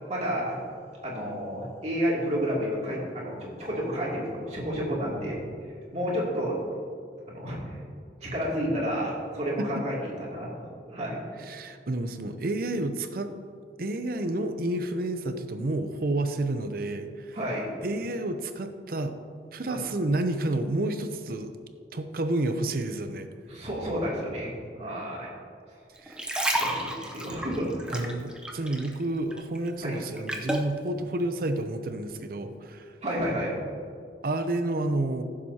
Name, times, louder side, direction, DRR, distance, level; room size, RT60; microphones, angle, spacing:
voice 1, 0.1-0.5 1.0-5.4 5.9-6.6 7.3-7.8 8.2-11.2 17.3-17.7 19.7-19.8 23.5-24.5 24.8-25.3 26.5-28.1 29.8-29.9 33.0-33.5, equal, 40° right, -5 dB, 2.6 m, -30 dB
voice 2, 11.4-13.3 13.8-17.4 17.8-19.2 19.5-21.5 21.9-23.3 26.0-26.3 27.9-32.9 34.2-35.2, right 2 dB, 55° right, 8 dB, 0.6 m, -30 dB
sound 1, 26.0-29.0 29.3-30.7 31.3-31.5, right 1 dB, 5° right, 0.7 m, -31 dB
15.0 x 7.4 x 2.8 m, 2.3 s
head